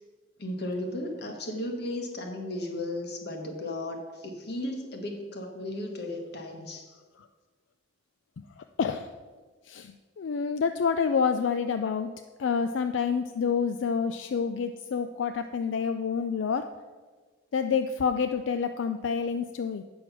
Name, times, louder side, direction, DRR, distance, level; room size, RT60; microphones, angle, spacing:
voice 1, 0.4-6.9, left 1 dB, 60° left, 3 dB, 1.4 m, -35 dB
voice 2, 8.8-9.1 9.7-12.1 12.4-16.7 17.5-19.8, left 6 dB, 85° left, 8 dB, 0.4 m, -28 dB
8.6 x 6.2 x 6.0 m, 1.4 s
head